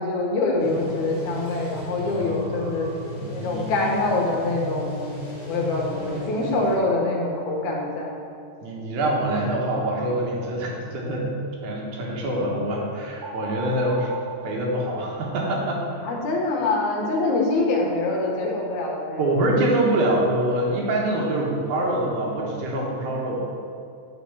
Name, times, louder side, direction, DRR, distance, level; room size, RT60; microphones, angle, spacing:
voice 1, 0.0-2.9 3.3-5.1 5.5-8.1 16.0-19.2, left 2 dB, 90° left, -2 dB, 2.8 m, -25 dB
sound 1, 0.6-6.8, left 1 dB, 10° right, 1.6 m, -35 dB
voice 2, 2.0-4.0 8.6-11.3 11.6-14.1 14.4-15.8 19.2-23.4, right 1 dB, 85° right, -3 dB, 2.9 m, -25 dB
sound 2, 13.2-15.7, right 4 dB, 65° right, 1.2 m, -38 dB
8.5 x 4.3 x 7.1 m, 2.6 s
omnidirectional pair, 3.3 m